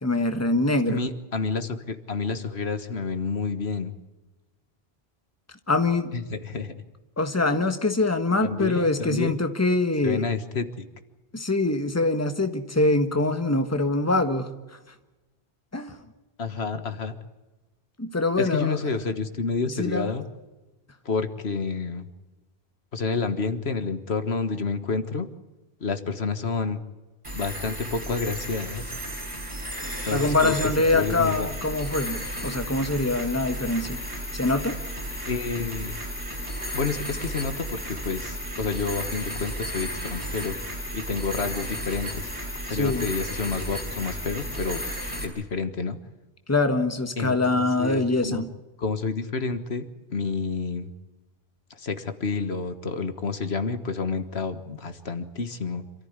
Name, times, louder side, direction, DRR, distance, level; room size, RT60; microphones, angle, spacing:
voice 1, 0.0-1.0 5.7-6.1 7.2-10.2 11.3-14.5 15.7-16.0 18.0-18.8 19.8-20.1 30.1-34.0 34.3-34.8 42.7-43.0 46.5-48.5, left 2 dB, 15° left, 8 dB, 1.4 m, -24 dB
voice 2, 0.9-4.0 6.1-6.7 8.4-9.4 10.0-10.9 16.4-17.2 18.4-20.3 21.1-22.1 22.9-25.3 25.8-26.8 27.3-29.1 30.0-30.6 30.9-31.5 35.3-35.9 36.7-40.6 40.9-42.3 42.6-45.0 45.2-46.0 47.2-48.4 48.8-50.9 51.7-55.8, left 4 dB, 85° left, 9 dB, 1.8 m, -29 dB
sound 1, 27.2-45.2, equal, 30° right, 4.8 m, -33 dB
27.0 x 14.0 x 9.7 m, 1.1 s
omnidirectional pair, 1.0 m